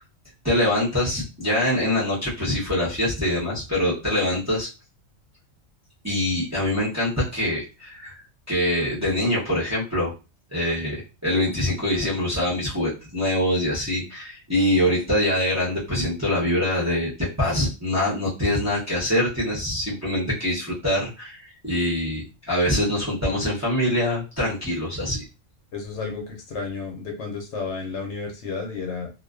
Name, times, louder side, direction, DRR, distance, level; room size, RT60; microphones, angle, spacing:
voice 1, 0.4-4.7 6.0-8.1 8.5-10.1 10.5-25.2, left 1 dB, 15° right, -7 dB, 0.6 m, -24 dB
voice 2, 25.7-29.1, left 4 dB, 65° left, 1 dB, 0.9 m, -32 dB
2.4 x 2.1 x 2.4 m, 0.30 s
omnidirectional pair, 1.4 m